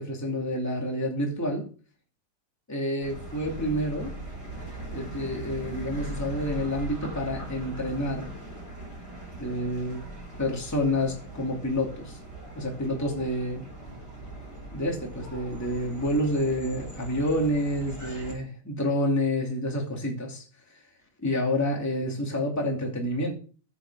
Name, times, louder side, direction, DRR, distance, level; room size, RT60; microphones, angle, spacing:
voice 1, 0.0-1.7 2.7-4.1 4.9-8.3 9.4-10.0 10.4-12.2 12.5-13.7 14.7-20.4 21.2-23.3, left 1 dB, 5° left, 0 dB, 2.4 m, -28 dB
sound 1, 3.0-18.3, right 1 dB, 30° left, 4.8 m, -40 dB
9.6 x 5.8 x 6.3 m, 0.39 s
omnidirectional pair, 2.4 m